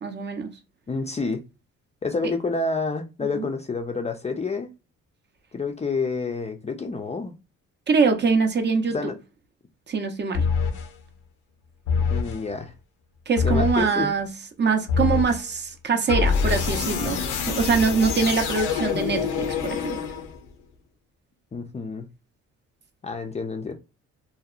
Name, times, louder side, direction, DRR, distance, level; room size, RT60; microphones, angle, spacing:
voice 1, 0.0-0.5 3.4-3.5 7.9-9.1 9.9-10.5 13.3-14.3 14.6-20.0, right 5 dB, 35° right, 0.5 m, -23 dB
voice 2, 0.9-1.4 2.0-4.7 5.5-7.3 8.9-9.1 12.1-12.7 13.4-14.1 21.5-22.1 23.0-23.7, left 4 dB, 20° left, 0.4 m, -28 dB
sound 1, 10.3-10.9 11.9-12.4 13.4-13.9 14.9-15.4 16.1-20.5, left 5 dB, 90° left, 0.6 m, -25 dB
2.7 x 2.1 x 2.3 m
cardioid pair, 90°, 30 cm